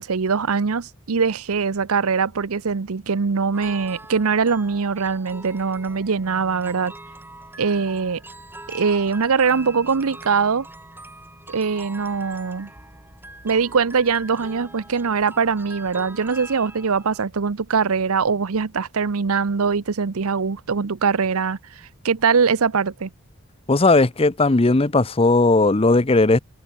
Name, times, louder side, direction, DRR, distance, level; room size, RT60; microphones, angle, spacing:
voice 1, 0.0-6.9 7.6-8.2 8.7-10.7 11.5-12.7 13.4-23.1, right 5 dB, 75° right, 0.7 m, -22 dB
sound 1, 3.5-17.2, right 2 dB, 10° right, 4.7 m, -42 dB
voice 2, 23.7-26.4, left 2 dB, 25° left, 0.7 m, -17 dB
head